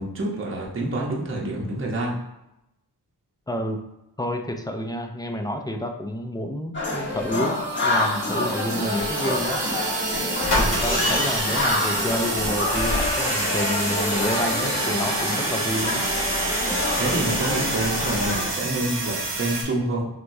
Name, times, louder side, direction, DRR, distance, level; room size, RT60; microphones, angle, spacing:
voice 1, 0.0-2.2 17.0-20.1, right 2 dB, 30° right, -3 dB, 0.8 m, -27 dB
voice 2, 3.5-3.8 4.2-9.6 10.6-16.0, equal, 10° left, 5 dB, 0.3 m, -29 dB
sound 1, 6.7-18.5, left 1 dB, 25° left, 1.1 m, -27 dB
sound 2, 7.2-19.6, right 3 dB, 85° right, 1.2 m, -30 dB
sound 3, 9.7-9.8 10.4-18.6 18.9-19.0 19.2-19.3, left 1 dB, 65° left, 1.4 m, -28 dB
6.0 x 2.3 x 2.6 m, 0.89 s
wide cardioid pair, 90°, 42 cm